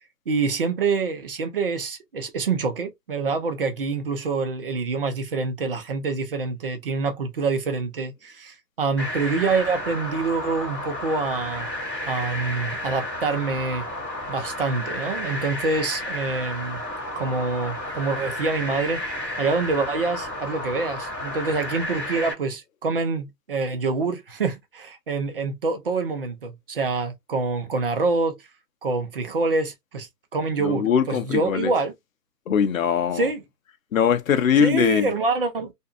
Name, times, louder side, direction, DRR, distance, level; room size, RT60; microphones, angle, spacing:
voice 1, 0.3-11.7 12.1-13.9 14.3-16.8 17.2-28.4 28.8-31.9 33.1-33.4 34.6-35.7, right 4 dB, 35° right, 0.6 m, -26 dB
sound 1, 9.0-22.3, left 1 dB, 5° left, 0.9 m, -32 dB
voice 2, 30.6-31.7 32.5-33.3 33.9-35.1, left 8 dB, 55° left, 0.6 m, -21 dB
2.6 x 2.3 x 2.4 m
figure-of-eight pair, 145°, 50 cm